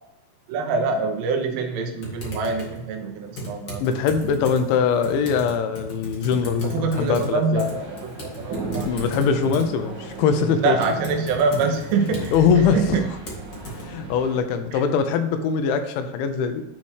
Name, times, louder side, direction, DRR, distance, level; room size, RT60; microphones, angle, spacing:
voice 1, 0.5-3.8 6.6-9.0 10.6-12.3 12.7-13.1 14.7-14.8, right 4 dB, 75° right, 4 dB, 2.9 m, -25 dB
Typing, 2.0-13.8, equal, 50° left, 1.5 m, -37 dB
voice 2, 3.8-7.7 8.8-10.8 12.3-13.0 13.7-16.6, left 6 dB, 85° left, 8 dB, 3.2 m, -22 dB
sound 1, 7.5-14.4, right 3 dB, 35° right, 2.1 m, -36 dB
11.0 x 4.3 x 4.7 m, 0.98 s
omnidirectional pair, 5.2 m